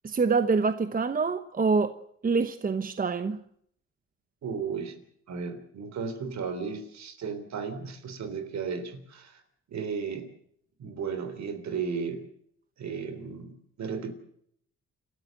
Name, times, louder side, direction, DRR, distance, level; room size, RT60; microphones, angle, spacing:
voice 1, 0.0-1.9 2.2-3.4, right 4 dB, 30° right, 1.0 m, -25 dB
voice 2, 4.4-5.0 5.3-9.4 9.7-10.3 10.8-12.2 12.8-14.1, right 5 dB, 65° right, 3.5 m, -34 dB
28.5 x 13.0 x 7.7 m
cardioid pair, 90°, 30 cm